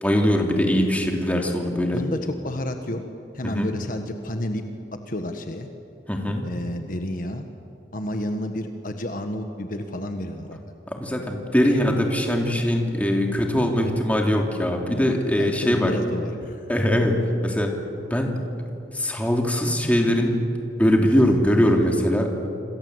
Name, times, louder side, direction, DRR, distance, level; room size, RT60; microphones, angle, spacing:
voice 1, 0.0-2.0 3.4-3.7 6.1-6.4 10.9-16.0 16.7-17.7 18.1-18.4 18.9-20.4 20.8-22.3, equal, 10° left, 1 dB, 3.2 m, -21 dB
voice 2, 1.9-3.0 3.3-4.6 5.1-5.7 6.4-7.4 7.9-10.6 11.6-11.8 15.4-16.6, left 1 dB, 50° left, 6 dB, 1.5 m, -30 dB
27.5 x 26.5 x 8.1 m, 2.8 s
head